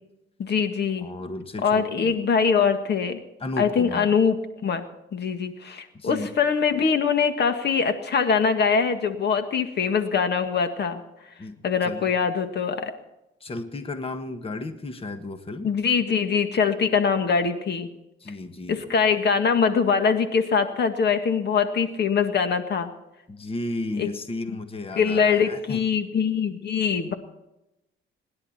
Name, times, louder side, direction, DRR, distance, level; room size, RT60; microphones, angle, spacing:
voice 1, 0.4-1.1 1.6-3.2 3.6-4.4 4.6-4.8 5.1-11.0 11.6-12.9 15.6-17.9 18.7-22.9 24.0-24.1 25.0-27.1, left 6 dB, 60° left, 8 dB, 1.8 m, -23 dB
voice 2, 1.0-2.2 3.4-4.1 5.9-6.3 11.4-12.1 13.4-15.7 18.2-18.9 23.3-25.8, left 2 dB, 30° left, 8 dB, 1.5 m, -34 dB
26.0 x 11.0 x 4.3 m, 0.92 s
cardioid pair, 90°, 20 cm